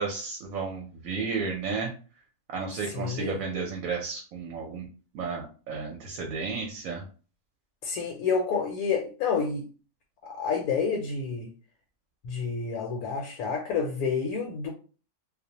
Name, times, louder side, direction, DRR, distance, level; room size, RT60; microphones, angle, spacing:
voice 1, 0.0-1.9 2.5-4.8 5.1-7.0, right 4 dB, 70° right, 1 dB, 0.9 m, -33 dB
voice 2, 2.9-3.4 7.8-9.6 10.2-11.5 12.2-14.7, left 5 dB, 75° left, 1 dB, 1.0 m, -29 dB
2.5 x 2.0 x 2.7 m, 0.37 s
omnidirectional pair, 1.6 m